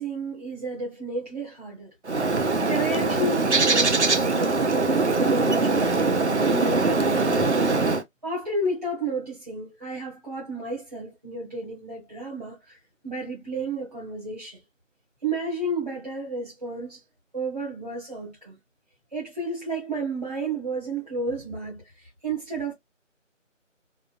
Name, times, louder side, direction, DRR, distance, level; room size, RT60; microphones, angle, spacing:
voice 1, 0.0-1.9 2.6-6.0 6.4-7.5 8.2-12.8 13.0-14.6 15.2-17.0 17.3-18.6 19.1-22.7, right 2 dB, 30° right, 1.4 m, -32 dB
Bird, 2.1-8.0, right 3 dB, 60° right, 0.7 m, -22 dB
3.5 x 2.5 x 2.5 m
figure-of-eight pair, 180°, 38 cm